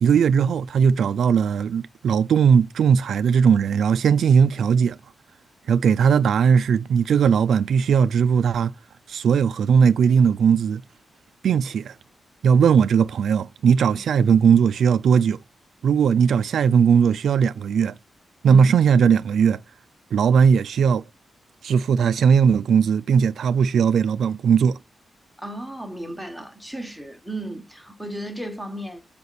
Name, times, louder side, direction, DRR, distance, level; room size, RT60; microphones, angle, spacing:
voice 1, 0.0-5.0 5.7-8.7 9.1-10.8 11.4-12.0 12.4-15.4 15.8-18.0 18.4-19.6 20.1-21.0 21.6-24.8, right 7 dB, 80° right, 0.3 m, -18 dB
voice 2, 25.4-29.0, right 1 dB, ahead, 1.3 m, -34 dB
6.8 x 5.1 x 4.1 m
wide cardioid pair, 140°, 0 cm